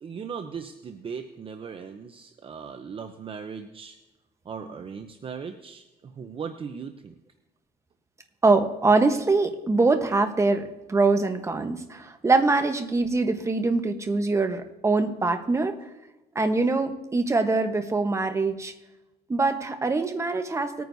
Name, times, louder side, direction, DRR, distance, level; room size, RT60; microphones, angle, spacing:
voice 1, 0.0-4.0 4.4-7.1, right 6 dB, 30° right, 7 dB, 0.7 m, -38 dB
voice 2, 8.4-15.8 16.3-18.7 19.3-20.8, right 3 dB, 15° right, 7 dB, 1.1 m, -23 dB
19.5 x 9.3 x 2.7 m, 1.0 s
cardioid pair, 110°, 17 cm